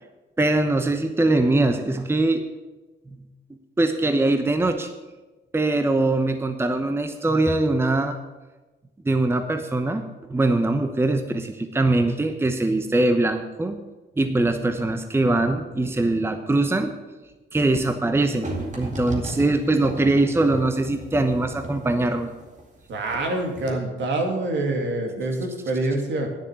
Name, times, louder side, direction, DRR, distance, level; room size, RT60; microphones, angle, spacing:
voice 1, 0.4-2.4 3.8-4.9 5.5-8.2 9.0-10.0 10.3-13.8 14.2-16.9 17.5-22.3, right 2 dB, 10° right, 7 dB, 0.9 m, -22 dB
sound 1, 18.4-23.3 23.6-23.7, right 2 dB, 40° right, 2.4 m, -36 dB
voice 2, 22.9-26.3, right 2 dB, 65° right, 2 dB, 2.8 m, -26 dB
10.0 x 6.6 x 8.5 m, 1.2 s
cardioid pair, 90°, 20 cm